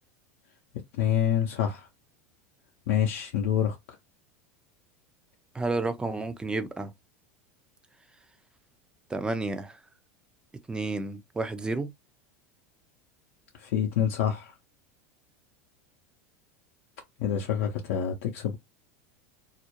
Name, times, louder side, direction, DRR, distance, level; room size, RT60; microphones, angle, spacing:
voice 1, 1.0-1.9 2.9-3.8 13.6-14.5 17.2-18.6, left 9 dB, 75° left, 0.6 m, -27 dB
voice 2, 5.5-6.9 9.1-9.8 10.7-11.9, right 3 dB, 10° right, 0.5 m, -31 dB
2.4 x 2.0 x 2.9 m
hypercardioid pair, 100°, 7 cm